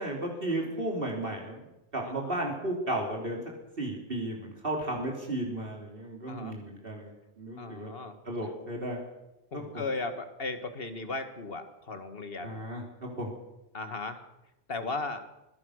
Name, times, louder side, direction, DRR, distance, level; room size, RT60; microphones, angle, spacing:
voice 1, 0.0-1.6 1.9-3.4 3.8-7.1 7.4-7.9 8.3-9.0 9.5-9.9 12.4-13.3, right 1 dB, 55° right, -1 dB, 3.6 m, -34 dB
voice 2, 2.0-2.4 6.3-6.6 7.6-8.1 9.5-12.6 13.7-14.2 14.7-15.2, left 3 dB, 60° left, 9 dB, 2.0 m, -36 dB
24.5 x 17.0 x 6.5 m, 0.94 s
omnidirectional pair, 1.1 m